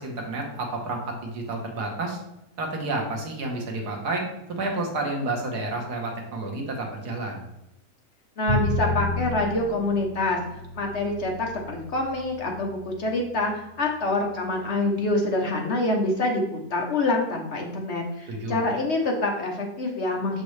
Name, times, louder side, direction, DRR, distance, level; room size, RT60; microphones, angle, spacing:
voice 1, 0.0-2.2 2.6-4.2 4.6-7.4 18.3-18.6, right 2 dB, 85° right, 1 dB, 1.8 m, -30 dB
voice 2, 8.4-10.4 10.7-20.4, left 2 dB, 50° left, 1 dB, 1.1 m, -26 dB
Bowed string instrument, 8.5-14.6, left 2 dB, 80° left, 2.5 m, -32 dB
6.7 x 5.2 x 3.2 m, 0.87 s
omnidirectional pair, 1.7 m